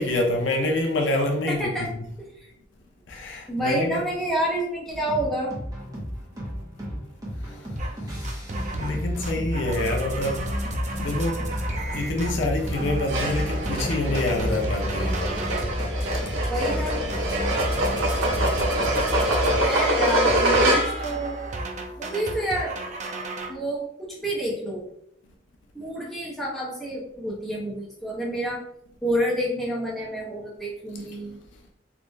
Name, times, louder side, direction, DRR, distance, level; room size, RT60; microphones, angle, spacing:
voice 1, 0.0-2.0 3.1-4.0 8.7-10.5 11.0-11.4 11.9-15.2, left 2 dB, 65° left, 0.6 m, -26 dB
voice 2, 1.5-1.8 2.2-2.3 3.5-5.5 16.5-17.1 19.6-21.4 22.0-22.8 23.5-24.8 25.7-28.6 29.0-31.4, right 1 dB, ahead, 0.9 m, -28 dB
sound 1, 4.9-19.5, equal, 20° right, 1.0 m, -31 dB
sound 2, 7.8-8.0 8.2-9.0 9.2-15.8 16.1-16.8 17.1-23.5, right 2 dB, 35° right, 0.4 m, -35 dB
sound 3, 13.1-21.2, right 1 dB, 80° right, 0.8 m, -25 dB
3.5 x 2.5 x 3.1 m
head